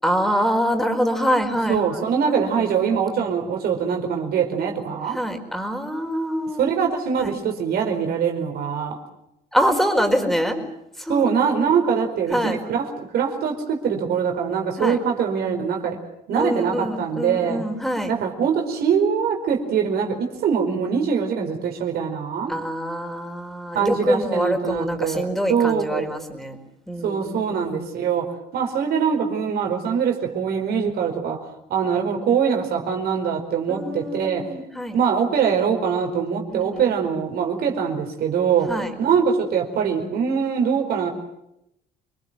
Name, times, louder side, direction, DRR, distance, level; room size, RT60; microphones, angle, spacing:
voice 1, 0.0-3.0 5.1-6.8 7.2-7.3 9.5-10.6 11.0-11.2 12.3-12.6 14.8-15.0 16.3-18.1 22.5-26.6 26.9-27.7 33.7-35.0 36.5-36.7 38.7-38.9, equal, ahead, 5 dB, 4.7 m, -25 dB
voice 2, 1.7-5.2 6.6-9.0 11.1-16.0 16.3-17.6 18.1-22.5 23.7-26.1 27.0-34.4 34.9-41.1, right 7 dB, 65° right, 3 dB, 4.7 m, -23 dB
27.5 x 21.5 x 7.6 m, 0.83 s
cardioid pair, 110°, 17 cm